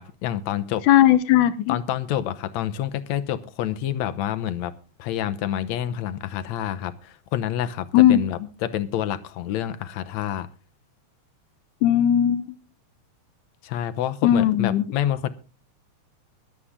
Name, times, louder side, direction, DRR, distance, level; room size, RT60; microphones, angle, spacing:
voice 1, 0.0-0.8 1.7-4.7 5.0-10.5 13.6-15.3, left 11 dB, 75° left, 2.2 m, -28 dB
voice 2, 0.9-1.8 7.9-8.2 11.8-12.5 14.2-14.8, left 11 dB, 90° left, 2.4 m, -17 dB
22.5 x 8.6 x 3.7 m
omnidirectional pair, 3.4 m